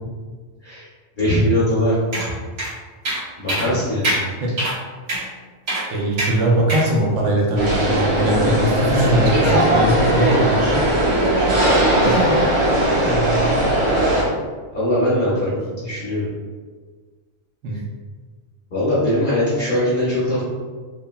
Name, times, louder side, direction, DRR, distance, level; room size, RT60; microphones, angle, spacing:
voice 1, 1.2-2.0 3.4-4.1 9.4-9.6 10.0-10.1 11.3-11.5 13.0-13.2 14.7-16.3 18.7-20.5, left 1 dB, 50° left, -11 dB, 0.8 m, -21 dB
sound 1, 2.1-2.3 2.6-2.7 3.0-3.2 3.5-3.7 4.0-4.2 4.6-4.7 5.1-5.2 5.7-5.8 6.2-6.3 6.7-6.9, right 1 dB, 90° right, 1.4 m, -23 dB
voice 2, 5.9-10.9 12.0-12.6 13.0-13.7 17.6-17.8, right 1 dB, 70° right, -1 dB, 0.9 m, -21 dB
sound 2, 7.6-14.2, right 1 dB, 50° right, 0.3 m, -18 dB
2.9 x 2.1 x 2.2 m, 1.5 s
omnidirectional pair, 1.3 m